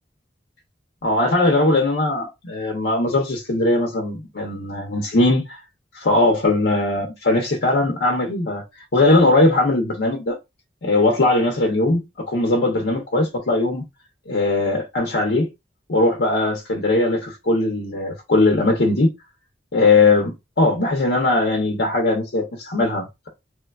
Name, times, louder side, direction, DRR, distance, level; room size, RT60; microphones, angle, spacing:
voice 1, 1.0-5.6 5.9-8.6 8.9-10.4 10.8-13.8 14.3-15.5 15.9-19.1 19.7-23.3, left 2 dB, 65° left, 0.7 m, -19 dB
3.1 x 2.2 x 2.3 m
head